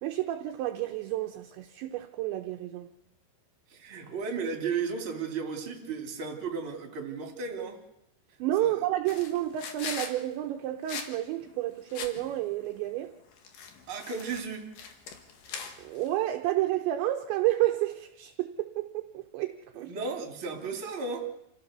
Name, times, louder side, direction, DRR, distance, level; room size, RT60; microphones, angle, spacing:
voice 1, 0.0-2.9 8.4-13.2 15.8-19.9, right 14 dB, 75° right, 5 dB, 2.9 m, -30 dB
voice 2, 3.7-7.8 8.6-8.8 13.9-14.7 19.7-21.3, right 5 dB, 30° right, 3 dB, 3.1 m, -34 dB
sound 1, 9.1-10.2 10.9-11.1 11.4-11.5 11.9-12.4 13.3-16.1, left 6 dB, 55° left, 2.6 m, -41 dB
28.5 x 15.5 x 6.8 m, 0.84 s
omnidirectional pair, 5.8 m